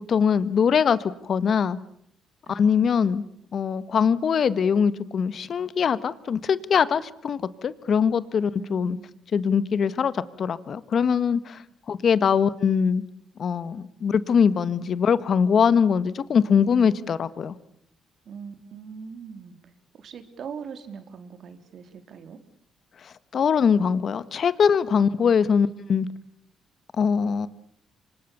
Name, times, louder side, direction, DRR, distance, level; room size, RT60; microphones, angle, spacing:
voice 1, 0.1-1.8 2.5-3.2 3.5-9.0 9.3-11.6 11.9-13.0 13.4-17.5 23.0-26.1 27.0-27.5, left 6 dB, 55° left, 15 dB, 1.6 m, -22 dB
voice 2, 2.4-3.1 8.6-9.1 18.3-22.4, right 6 dB, 60° right, 8 dB, 3.8 m, -41 dB
29.0 x 25.5 x 7.0 m, 0.69 s
cardioid pair, 90°, 0 cm